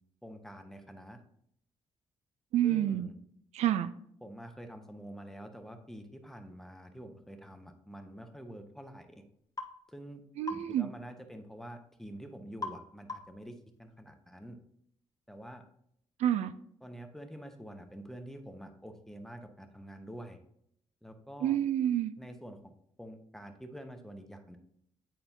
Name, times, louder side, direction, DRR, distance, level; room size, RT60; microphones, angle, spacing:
voice 1, 0.2-1.2 2.6-3.2 4.2-9.2 9.9-14.6 15.3-15.6 16.8-20.4 21.0-21.6 22.2-22.7 23.0-24.6, equal, 5° left, 6 dB, 0.8 m, -47 dB
voice 2, 2.5-3.1 3.5-3.9 10.4-10.9 16.2-16.5 21.4-22.1, right 11 dB, 75° right, 12 dB, 0.4 m, -28 dB
sound 1, 9.6-9.8 10.5-10.7 12.6-12.8 13.1-13.4, left 3 dB, 30° left, 0.9 m, -39 dB
9.1 x 4.2 x 2.7 m, 0.70 s
cardioid pair, 95°, 12 cm